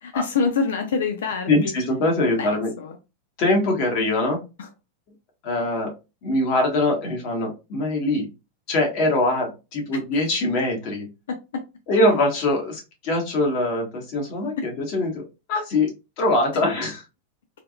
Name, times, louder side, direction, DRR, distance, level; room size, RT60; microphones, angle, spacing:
voice 1, 0.0-1.7 2.4-3.0 4.6-4.7 10.1-10.3, left 5 dB, 90° left, 6 dB, 0.5 m, -26 dB
voice 2, 1.5-2.7 3.4-4.4 5.4-5.9 6.2-8.3 8.7-11.1 11.9-15.2 15.5-15.9 16.2-17.0, left 2 dB, 45° left, 1 dB, 1.3 m, -22 dB
3.4 x 2.2 x 2.3 m, 0.27 s
supercardioid pair, 150°, 0 cm